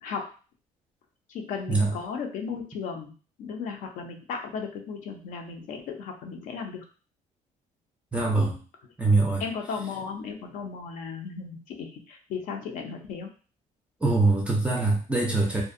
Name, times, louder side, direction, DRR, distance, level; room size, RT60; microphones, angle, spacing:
voice 1, 0.0-0.3 1.3-6.8 8.1-8.4 9.4-13.3, left 5 dB, 70° left, 4 dB, 0.5 m, -36 dB
voice 2, 8.1-8.6 9.0-9.4 14.0-15.6, right 3 dB, 10° right, -1 dB, 0.4 m, -23 dB
2.5 x 2.1 x 2.5 m, 0.37 s
cardioid pair, 150°, 14 cm